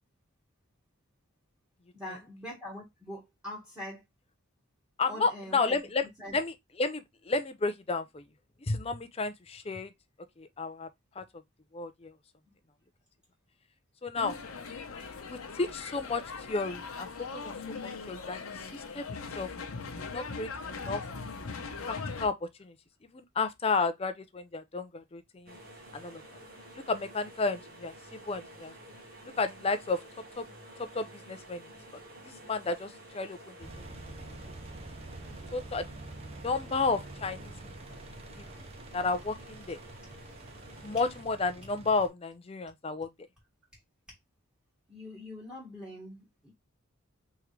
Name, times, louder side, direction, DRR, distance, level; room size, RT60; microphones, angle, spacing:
voice 1, 1.9-4.0 5.1-5.8 6.2-6.4 44.9-46.5, left 1 dB, 5° right, 1.7 m, -43 dB
voice 2, 5.0-6.1 6.3-8.2 8.7-9.9 10.4-10.9 11.2-11.3 11.7-12.1 14.0-14.3 15.3-16.2 16.5-17.1 17.3-18.4 18.7-19.5 20.1-21.0 21.8-22.7 23.1-25.6 25.9-26.2 26.7-27.9 28.3-28.7 29.4-30.0 30.4-30.5 30.8-31.6 32.5-33.9 35.5-35.9 36.4-37.7 38.4-38.5 38.9-39.8 40.8-43.1, left 3 dB, 30° left, 0.5 m, -32 dB
sound 1, 14.1-22.3, left 4 dB, 85° left, 0.9 m, -40 dB
sound 2, 25.5-41.2, right 1 dB, 45° right, 1.4 m, -51 dB
Engine, 33.6-42.1, right 2 dB, 30° right, 0.5 m, -46 dB
3.6 x 3.3 x 3.0 m
head